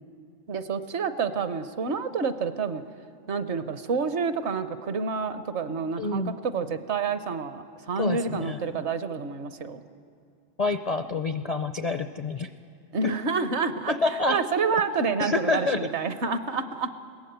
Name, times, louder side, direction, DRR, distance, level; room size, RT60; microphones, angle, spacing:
voice 1, 0.5-2.8 3.3-9.8 12.9-16.9, right 5 dB, 60° right, 11 dB, 1.1 m, -28 dB
voice 2, 6.0-6.4 8.0-8.9 10.6-12.5 13.0-13.1 13.9-14.4 15.2-15.9, left 3 dB, 50° left, 9 dB, 0.5 m, -28 dB
21.0 x 17.0 x 8.0 m, 2.5 s
omnidirectional pair, 1.3 m